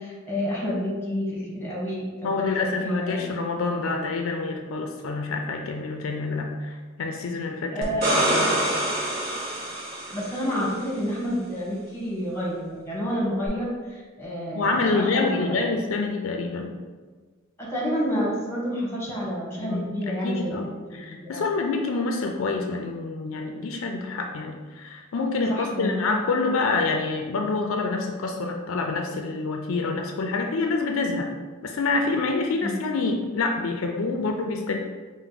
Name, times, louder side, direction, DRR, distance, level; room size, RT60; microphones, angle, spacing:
voice 1, 0.0-3.3 3.7-3.8 7.7-8.5 10.1-15.6 17.6-20.6 21.1-21.4 25.5-26.2 32.6-32.7, equal, 10° left, -5 dB, 1.0 m, -29 dB
voice 2, 2.2-7.9 8.2-8.6 14.5-16.7 19.6-31.3 31.6-34.8, left 3 dB, 70° left, 3 dB, 0.4 m, -27 dB
sound 1, 7.8-10.6 13.5-13.6, right 1 dB, 45° right, 1.1 m, -26 dB
4.4 x 2.0 x 3.9 m, 1.4 s
head